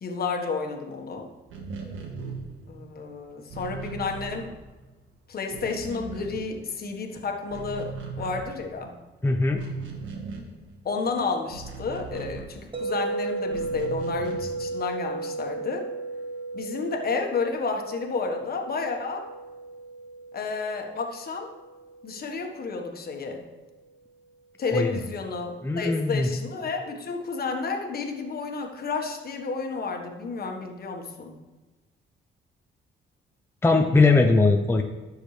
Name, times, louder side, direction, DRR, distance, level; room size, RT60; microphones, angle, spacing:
voice 1, 0.0-1.3 2.7-4.5 5.3-8.9 10.8-15.9 16.5-19.3 20.3-21.5 22.0-23.4 24.6-31.3, left 4 dB, 50° left, 3 dB, 1.5 m, -31 dB
sound 1, 1.4-5.1 5.3-7.1 7.3-13.0 13.5-14.7, right 4 dB, 80° right, 1.5 m, -39 dB
voice 2, 9.2-9.6 24.7-24.9 25.6-26.3 33.6-34.8, left 3 dB, 10° left, 3 dB, 0.7 m, -20 dB
sound 2, 12.7-22.8, right 3 dB, 25° right, 1.1 m, -35 dB
13.5 x 6.4 x 3.3 m, 1.2 s
cardioid pair, 90°, 20 cm